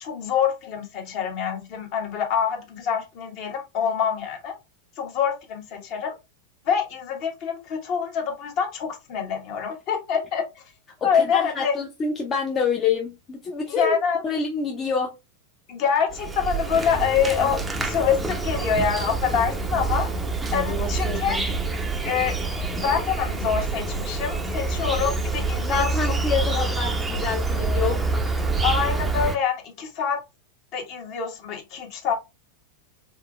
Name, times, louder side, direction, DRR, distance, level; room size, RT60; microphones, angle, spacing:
voice 1, 0.0-4.5 5.0-6.1 6.6-10.4 11.0-11.7 13.7-14.2 15.7-20.1 20.5-21.4 22.0-22.4 22.8-25.9 26.5-26.6 28.6-30.2 30.7-32.1, left 7 dB, 40° left, 1.3 m, -25 dB
voice 2, 11.1-14.0 14.2-15.1 20.5-21.5 25.6-28.1, left 5 dB, 25° left, 0.7 m, -27 dB
Insect, 16.1-29.4, right 3 dB, 10° right, 0.6 m, -26 dB
3.6 x 3.6 x 2.3 m
figure-of-eight pair, 90°, 0 cm